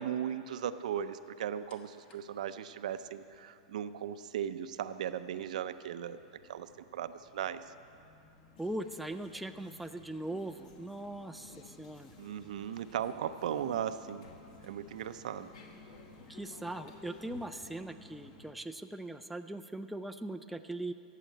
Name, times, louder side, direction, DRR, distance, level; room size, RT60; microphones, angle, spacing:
voice 1, 0.0-6.2 6.5-6.7 6.9-7.6 12.2-14.3 14.6-15.5, right 9 dB, 75° right, 11 dB, 0.6 m, -37 dB
sound 1, 1.7-18.5, left 2 dB, 25° left, 1.1 m, -59 dB
sound 2, 8.6-17.8, left 4 dB, 70° left, 1.7 m, -57 dB
voice 2, 8.6-12.1 16.3-20.9, right 1 dB, ahead, 7 dB, 0.3 m, -40 dB
14.0 x 7.6 x 9.2 m, 2.6 s
supercardioid pair, 155°, 4 cm